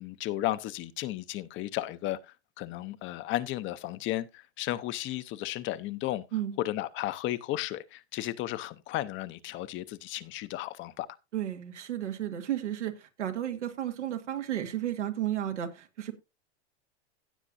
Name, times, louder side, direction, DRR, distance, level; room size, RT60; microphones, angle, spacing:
voice 1, 0.0-2.2 2.6-4.3 4.6-6.2 6.6-11.1, left 15 dB, 35° left, 0.7 m, -34 dB
voice 2, 11.3-16.1, right 11 dB, 85° right, 1.9 m, -33 dB
16.5 x 7.3 x 2.6 m
hypercardioid pair, 115°, 34 cm